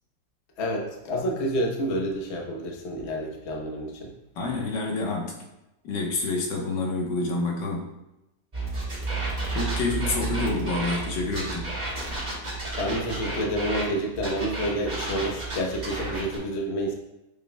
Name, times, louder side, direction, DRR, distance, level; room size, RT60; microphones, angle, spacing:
voice 1, 0.6-4.1 12.8-16.9, equal, 45° left, 0 dB, 1.1 m, -29 dB
voice 2, 4.4-5.3 5.8-7.9 9.5-11.7, left 3 dB, 85° left, 0 dB, 1.8 m, -28 dB
sound 1, 8.5-13.8 14.2-16.4, right 2 dB, 25° right, 2.1 m, -31 dB
7.0 x 6.6 x 2.2 m, 0.93 s
omnidirectional pair, 1.9 m